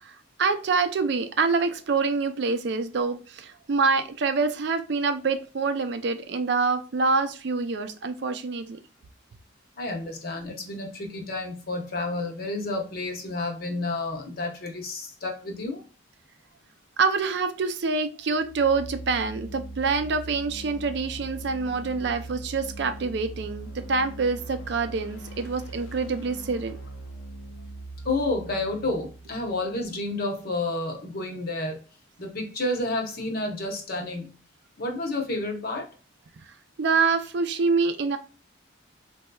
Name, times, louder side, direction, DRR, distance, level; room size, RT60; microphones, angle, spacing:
voice 1, 0.0-8.8 17.0-26.8 36.8-38.2, right 4 dB, 55° right, 9 dB, 0.4 m, -26 dB
voice 2, 9.8-15.8 28.0-31.8 32.2-34.3 34.8-35.9, left 2 dB, 50° left, 2 dB, 0.8 m, -30 dB
sound 1, 18.3-30.0, right 2 dB, 90° left, 0.7 m, -41 dB
4.2 x 2.7 x 2.2 m, 0.34 s
head